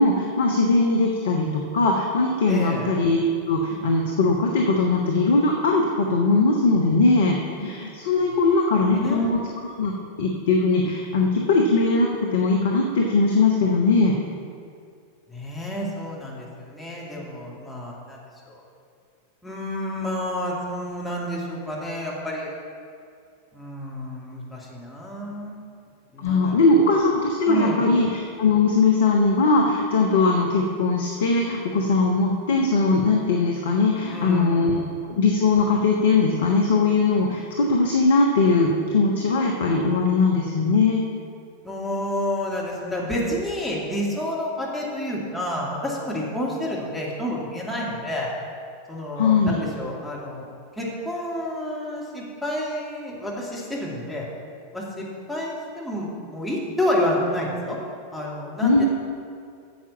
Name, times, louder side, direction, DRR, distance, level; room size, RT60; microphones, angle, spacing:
voice 1, 0.0-9.9 10.2-14.1 26.2-41.0 49.1-49.6 58.6-58.9, left 3 dB, 60° left, 1 dB, 1.0 m, -20 dB
voice 2, 2.5-2.9 8.2-8.4 8.9-9.3 15.3-18.6 19.4-22.5 23.5-25.6 26.1-26.5 27.4-27.9 34.1-35.0 41.6-48.3 48.9-50.5 50.8-54.2 54.7-57.8 58.1-58.9, left 1 dB, ahead, -5 dB, 2.4 m, -29 dB
9.5 x 7.3 x 7.1 m, 2.3 s
figure-of-eight pair, 90°, 0 cm